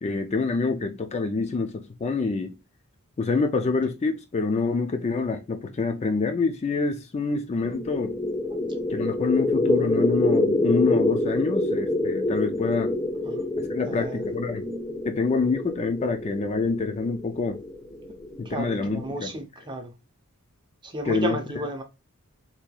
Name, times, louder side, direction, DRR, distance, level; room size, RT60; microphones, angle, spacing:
voice 1, 0.0-2.6 3.2-8.1 8.9-12.9 13.6-14.7 15.0-17.6 18.4-19.3 21.1-21.4, left 4 dB, 30° left, 0.3 m, -26 dB
sound 1, 7.6-19.1, left 2 dB, 15° left, 0.8 m, -27 dB
voice 2, 13.9-14.2 18.4-19.9 20.8-21.8, right 1 dB, 20° right, 0.6 m, -32 dB
4.3 x 2.8 x 2.3 m
head